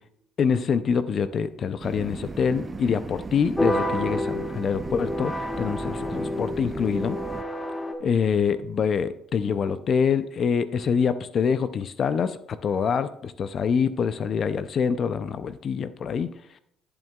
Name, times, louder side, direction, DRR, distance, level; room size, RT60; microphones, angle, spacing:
voice 1, 0.4-7.2 8.0-16.3, left 6 dB, 45° left, 12 dB, 0.4 m, -25 dB
sound 1, 1.8-7.4, right 3 dB, 20° right, 0.5 m, -36 dB
sound 2, 3.6-7.9, left 1 dB, 10° left, 1.0 m, -29 dB
11.0 x 7.9 x 2.3 m, 0.73 s
cardioid pair, 95°, 0 cm